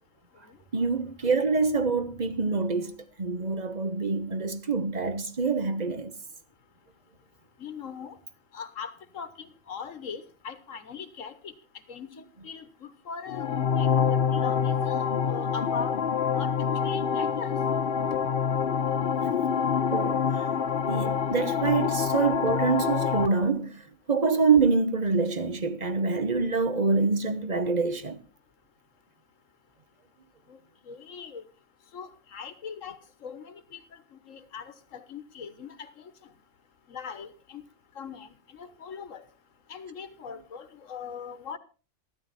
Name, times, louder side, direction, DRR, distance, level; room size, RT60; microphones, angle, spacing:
voice 1, 0.7-6.1 19.2-19.3 19.9-28.2, right 4 dB, 35° right, 1.1 m, -26 dB
voice 2, 7.6-8.2 8.5-11.5 11.9-16.0 16.3-16.5 16.8-17.5 30.5-30.6 30.9-31.4 31.9-33.8 34.1-36.1 36.9-37.6 38.0-39.2 39.7-41.6, left 6 dB, 85° left, 1.6 m, -40 dB
sound 1, 13.3-23.3, left 7 dB, 50° left, 0.9 m, -26 dB
13.5 x 13.0 x 4.2 m
omnidirectional pair, 1.3 m